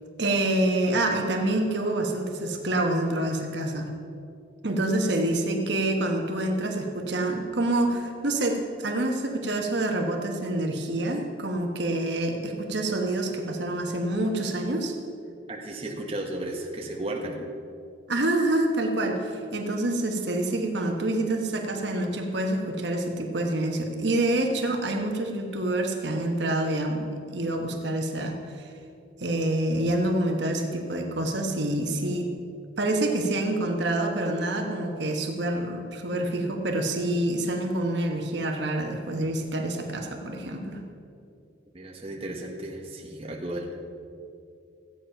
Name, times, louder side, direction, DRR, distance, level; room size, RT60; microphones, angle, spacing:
voice 1, 0.2-3.9 4.6-14.9 18.1-28.7 29.2-32.3 32.8-40.8, right 1 dB, 60° right, 2 dB, 1.2 m, -27 dB
voice 2, 15.5-17.5 41.7-43.8, right 1 dB, 30° right, 0 dB, 1.3 m, -34 dB
14.5 x 8.8 x 5.7 m, 2.5 s
head